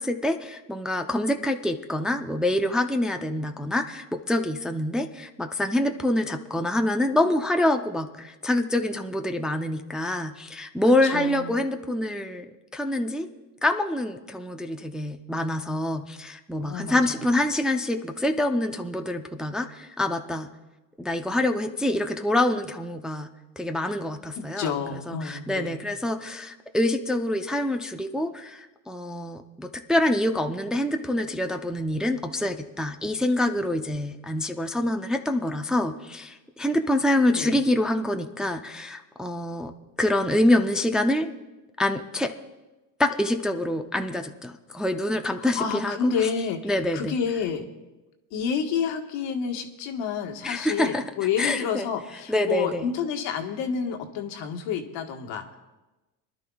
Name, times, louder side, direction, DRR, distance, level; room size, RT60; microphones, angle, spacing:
voice 1, 0.0-13.3 13.6-20.5 21.0-23.3 23.6-24.7 25.1-39.7 40.0-41.3 41.8-42.3 43.0-46.1 46.6-47.2 50.4-51.0 51.4-51.8 52.3-52.9, left 1 dB, ahead, 5 dB, 0.6 m, -26 dB
voice 2, 11.0-11.5 16.6-17.3 24.3-25.8 37.3-37.6 45.4-47.6 48.3-55.6, left 6 dB, 65° left, 5 dB, 1.5 m, -29 dB
25.0 x 11.5 x 2.4 m, 1.1 s
supercardioid pair, 90°, 47 cm